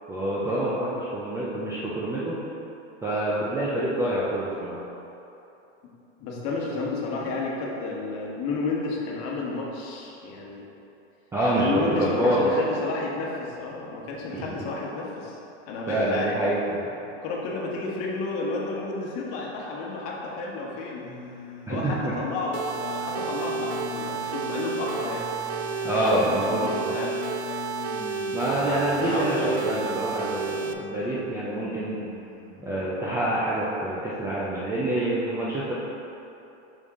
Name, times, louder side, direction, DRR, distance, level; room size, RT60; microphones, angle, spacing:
voice 1, 0.1-2.4 3.0-4.8 11.3-12.5 14.3-14.5 15.9-16.9 21.7-21.9 25.8-26.9 28.3-32.0 32.6-35.7, right 1 dB, 10° right, -7 dB, 0.4 m, -26 dB
voice 2, 6.2-10.7 11.6-15.4 15.7-16.4 17.2-21.1 21.7-25.3 26.0-27.1 28.9-29.5, left 3 dB, 40° left, -3 dB, 1.3 m, -31 dB
sound 1, 20.9-32.9, left 7 dB, 20° left, 1.2 m, -42 dB
sound 2, 22.5-30.7, right 5 dB, 60° right, 0.6 m, -31 dB
6.6 x 5.4 x 3.7 m, 2.9 s
supercardioid pair, 140°, 36 cm